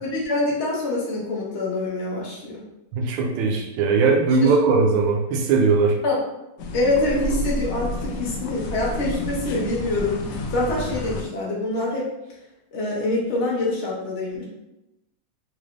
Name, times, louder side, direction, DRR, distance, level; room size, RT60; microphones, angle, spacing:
voice 1, 0.0-2.6 4.4-4.5 6.0-6.2 6.7-12.1 12.7-14.4, left 2 dB, 50° left, -4 dB, 0.8 m, -25 dB
voice 2, 2.9-6.0, right 4 dB, 90° right, 1 dB, 1.4 m, -19 dB
sound 1, 6.6-11.2, left 1 dB, 75° left, 1.1 m, -30 dB
3.8 x 3.1 x 2.5 m, 0.93 s
omnidirectional pair, 2.2 m